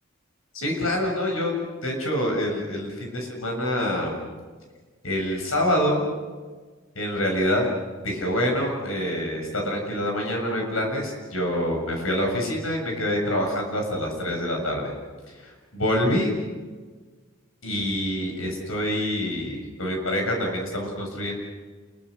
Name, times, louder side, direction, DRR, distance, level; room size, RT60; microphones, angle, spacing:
voice 1, 0.5-1.5 1.8-4.2 5.0-6.1 6.9-7.7 8.0-14.9 15.3-16.3 17.6-21.3, left 1 dB, 80° left, 2 dB, 7.5 m, -26 dB
29.0 x 22.5 x 6.6 m, 1.4 s
head